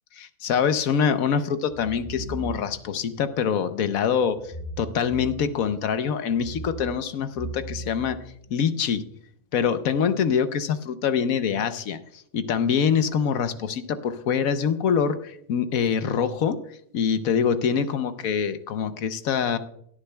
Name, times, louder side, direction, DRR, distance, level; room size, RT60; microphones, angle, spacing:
voice 1, 0.1-8.2 8.5-9.1 9.5-16.6 16.9-19.6, left 7 dB, 75° left, 10 dB, 1.2 m, -25 dB
sound 1, 1.7-3.0 4.4-5.8 6.3-8.8, right 2 dB, 35° left, 0.5 m, -38 dB
17.0 x 9.9 x 2.2 m, 0.67 s
omnidirectional pair, 1.5 m